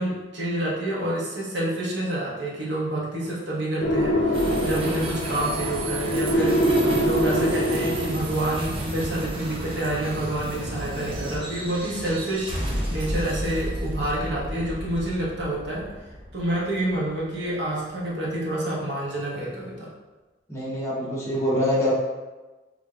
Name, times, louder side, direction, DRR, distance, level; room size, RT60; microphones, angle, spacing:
voice 1, 0.0-15.9 16.3-19.9, right 1 dB, 75° right, -5 dB, 0.8 m, -28 dB
sound 1, 3.8-8.4, equal, 80° left, 0.5 m, -24 dB
sound 2, 4.3-17.7, right 1 dB, 30° right, 0.5 m, -33 dB
voice 2, 20.5-21.9, left 1 dB, 15° left, -6 dB, 0.8 m, -24 dB
3.3 x 3.0 x 2.4 m, 1.2 s
head